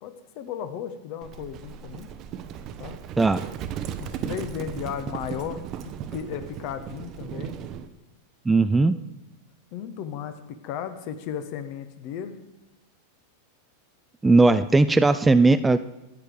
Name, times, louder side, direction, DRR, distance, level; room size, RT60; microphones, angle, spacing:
voice 1, 0.0-2.1 2.8-3.0 4.0-7.6 8.8-8.9 9.7-12.4, left 9 dB, 45° left, 10 dB, 1.1 m, -35 dB
Livestock farm animals working animals, 1.2-7.9, right 9 dB, 35° right, 0.8 m, -36 dB
voice 2, 8.5-8.9 14.2-15.8, right 3 dB, 10° right, 13 dB, 0.4 m, -18 dB
12.5 x 9.2 x 4.9 m, 0.98 s
figure-of-eight pair, 90°, 0 cm